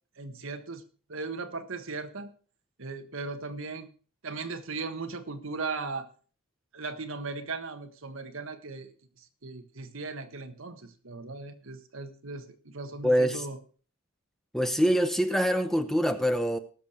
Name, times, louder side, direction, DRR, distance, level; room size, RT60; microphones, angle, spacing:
voice 1, 0.2-0.8 1.1-2.3 2.8-3.9 4.2-6.1 6.7-8.9 9.4-13.6, right 3 dB, 65° right, 8 dB, 1.4 m, -37 dB
voice 2, 13.0-13.5 14.5-16.6, equal, ahead, 9 dB, 0.7 m, -25 dB
19.0 x 6.8 x 4.4 m, 0.39 s
head